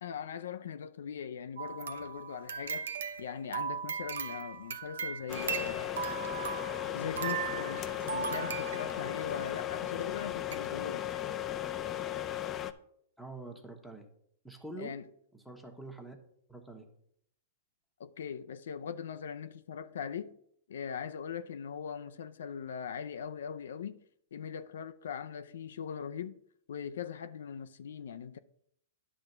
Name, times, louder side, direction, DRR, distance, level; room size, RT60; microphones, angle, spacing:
voice 1, 0.0-2.9 3.2-5.9 6.9-11.3 14.8-15.0 18.0-20.4 20.7-24.0 24.3-26.4 26.7-28.4, left 7 dB, 80° left, 0.4 m, -40 dB
sound 1, 1.6-9.3 10.0-10.1 10.5-10.7 11.0-11.1, right 7 dB, 85° right, 0.7 m, -38 dB
sound 2, 5.3-12.7, left 11 dB, 25° left, 0.4 m, -36 dB
voice 2, 13.2-14.1 14.4-15.0 15.3-16.2 16.5-16.9, right 2 dB, ahead, 1.1 m, -45 dB
10.0 x 3.5 x 6.6 m
hypercardioid pair, 140°, 0 cm